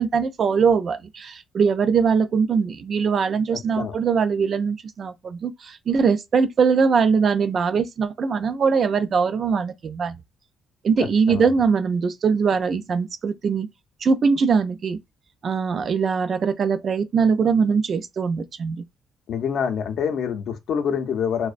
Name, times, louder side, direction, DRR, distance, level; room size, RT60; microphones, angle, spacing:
voice 1, 0.0-10.2 10.8-13.7 14.0-15.0 15.4-18.8, right 5 dB, 55° right, 0.3 m, -21 dB
voice 2, 3.5-3.9 11.3-11.5 19.3-21.5, left 7 dB, 70° left, 0.5 m, -26 dB
2.4 x 2.0 x 2.4 m
cardioid pair, 90°, 0 cm